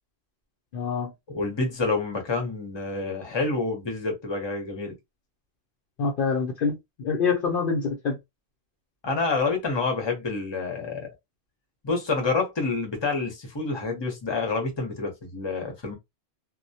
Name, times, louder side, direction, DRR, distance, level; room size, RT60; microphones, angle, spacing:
voice 1, 0.7-1.1 6.0-8.2, left 5 dB, 60° left, 0.7 m, -26 dB
voice 2, 1.3-4.9 9.0-11.1 11.8-16.0, left 3 dB, 30° left, 0.7 m, -28 dB
2.1 x 2.1 x 2.7 m
omnidirectional pair, 1.1 m